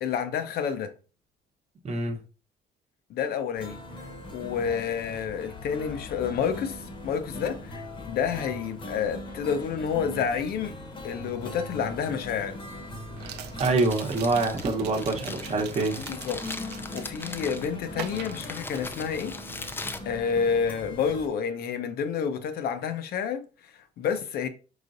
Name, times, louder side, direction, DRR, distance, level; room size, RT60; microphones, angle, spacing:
voice 1, 0.0-0.9 3.1-10.8 11.0-12.6 16.0-16.4 16.9-19.4 20.0-24.5, left 7 dB, 65° left, 0.7 m, -29 dB
voice 2, 1.8-2.2 13.6-16.0, right 3 dB, 40° right, 1.0 m, -25 dB
sound 1, 3.5-21.3, left 1 dB, 30° left, 0.9 m, -40 dB
sound 2, 11.5-11.6 13.2-17.4 17.9-19.2 19.5-19.9, right 10 dB, 80° right, 0.5 m, -43 dB
Crumpling crinkling, 13.6-20.9, left 2 dB, 15° left, 0.4 m, -41 dB
5.0 x 3.7 x 2.6 m
cardioid pair, 110°, 17 cm